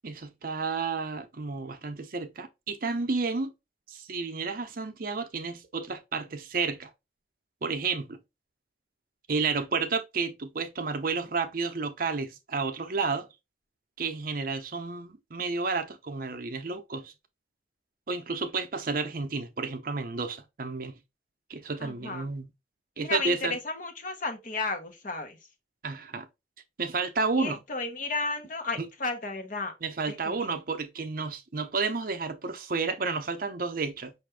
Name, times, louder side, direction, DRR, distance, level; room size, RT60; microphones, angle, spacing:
voice 1, 0.0-3.5 3.9-6.9 7.6-8.2 9.3-13.3 14.0-17.1 18.1-21.0 21.5-22.4 23.0-23.6 25.8-26.3 26.8-27.6 28.8-28.9 29.8-34.1, right 4 dB, 50° right, 0.6 m, -31 dB
voice 2, 21.8-22.2 23.0-25.4 27.4-29.7 30.1-30.4, left 3 dB, 45° left, 0.9 m, -33 dB
5.6 x 2.5 x 3.3 m
head